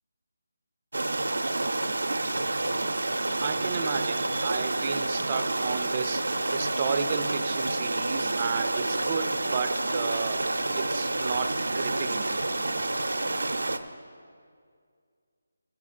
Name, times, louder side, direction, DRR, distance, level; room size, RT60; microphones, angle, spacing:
sound 1, 0.9-13.8, right 2 dB, 85° right, 0.6 m, -29 dB
voice 1, 3.1-6.3 6.5-10.5 10.8-12.3, right 6 dB, 30° right, 8 dB, 0.4 m, -33 dB
15.5 x 6.0 x 4.2 m, 2.2 s
figure-of-eight pair, 165°, 0 cm